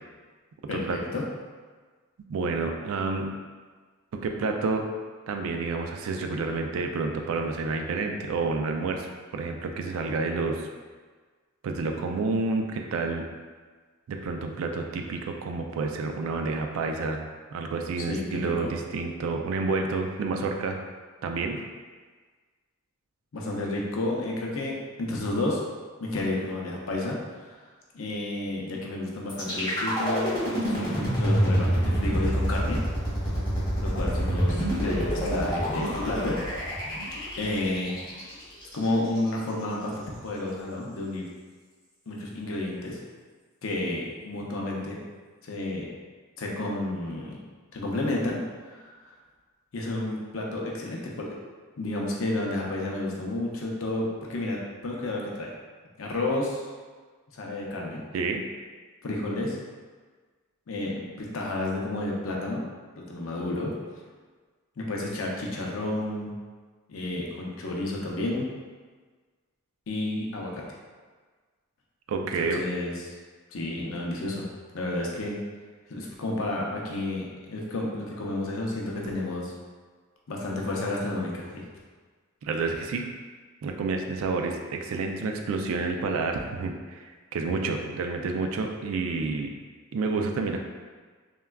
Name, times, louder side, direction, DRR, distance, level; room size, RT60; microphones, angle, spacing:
voice 1, 0.7-1.2 18.0-18.7 23.3-25.6 26.0-27.2 27.9-30.3 30.6-32.8 33.8-36.4 37.4-37.9 38.7-41.3 42.1-43.0 43.6-45.0 45.4-45.9 46.4-47.4 47.7-48.9 49.7-51.4 51.8-55.5 56.0-56.7 57.3-58.0 59.0-59.6 60.7-62.6 63.0-63.7 64.8-66.4 66.9-68.5 69.9-70.6 72.4-73.1 73.5-74.5 74.7-75.3 75.9-79.5 80.3-81.7, left 2 dB, 70° left, -2 dB, 0.5 m, -31 dB
voice 2, 2.3-3.3 4.1-4.9 5.3-9.1 9.3-10.6 11.6-13.3 14.1-17.2 17.5-20.8 21.2-21.6 58.1-58.4 72.1-72.6 82.4-83.0 83.6-87.0 87.3-89.5 89.9-90.6, right 3 dB, 70° right, 3 dB, 0.3 m, -29 dB
sound 1, 29.3-39.3, equal, 20° left, 0.8 m, -27 dB
3.4 x 2.2 x 2.2 m, 1.4 s
head